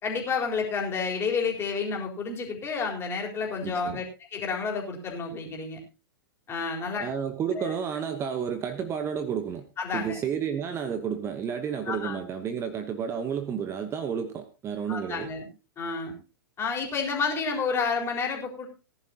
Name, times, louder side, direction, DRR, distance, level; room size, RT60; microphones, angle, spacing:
voice 1, 0.0-4.0 4.3-5.8 6.5-7.1 7.5-7.6 9.8-10.2 11.9-12.2 14.9-15.5 15.8-16.1 16.6-18.7, left 5 dB, 20° left, 1 dB, 4.0 m, -30 dB
voice 2, 3.6-4.0 7.0-9.6 9.9-15.3, right 7 dB, 20° right, 8 dB, 1.1 m, -31 dB
18.0 x 11.0 x 2.9 m, 0.30 s
figure-of-eight pair, 105°, 12 cm